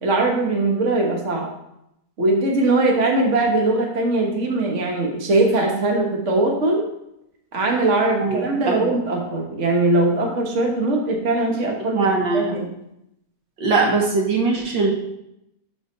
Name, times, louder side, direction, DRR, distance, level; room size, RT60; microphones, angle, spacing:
voice 1, 0.0-1.5 2.2-6.8 7.5-12.7, right 2 dB, 45° right, 0 dB, 1.6 m, -21 dB
voice 2, 8.2-8.9 12.0-12.5 13.6-14.9, right 4 dB, 85° right, 0 dB, 2.1 m, -21 dB
12.0 x 4.5 x 4.0 m, 0.82 s
omnidirectional pair, 1.9 m